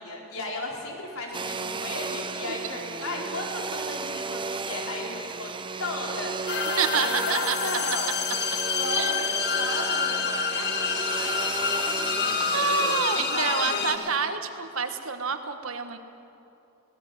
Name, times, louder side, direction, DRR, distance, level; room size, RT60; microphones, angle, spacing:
voice 1, 0.0-5.5 5.8-8.1 8.8-14.1, left 2 dB, 75° left, -1 dB, 4.4 m, -35 dB
Domestic sounds home sounds, 1.3-14.1, right 4 dB, 25° right, 0.7 m, -34 dB
voice 2, 2.4-3.1 6.8-7.6 8.9-9.2 11.8-12.0 12.5-16.0, right 5 dB, 70° right, 7 dB, 1.6 m, -28 dB
sound 1, 6.5-14.0, left 6 dB, 50° left, 1.3 m, -28 dB
23.0 x 18.0 x 8.0 m, 2.7 s
head